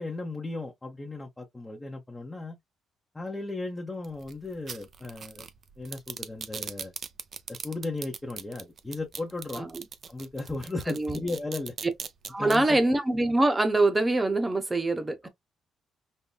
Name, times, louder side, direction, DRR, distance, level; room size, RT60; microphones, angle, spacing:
voice 1, 0.0-2.6 3.1-5.5 5.8-6.9 7.5-9.7 10.1-11.7 12.4-12.8 15.2-15.3, left 2 dB, 15° left, 0.9 m, -36 dB
sound 1, 4.0-12.6, right 6 dB, 50° right, 0.6 m, -40 dB
voice 2, 12.3-15.3, right 2 dB, 20° right, 1.0 m, -24 dB
5.5 x 2.1 x 2.2 m
cardioid pair, 90°, 0 cm